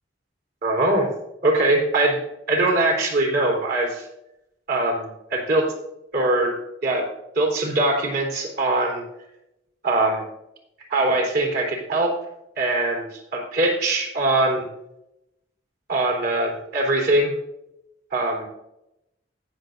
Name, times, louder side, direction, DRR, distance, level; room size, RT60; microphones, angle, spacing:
voice 1, 0.6-1.1 1.4-2.2 2.5-4.0 4.7-5.7 6.1-6.5 6.8-7.0 7.4-9.0 9.8-10.2 10.9-12.1 12.6-13.1 13.3-14.7 15.9-17.3 18.1-18.5, right 2 dB, 60° right, 1 dB, 3.7 m, -22 dB
19.5 x 7.2 x 2.7 m, 0.85 s
head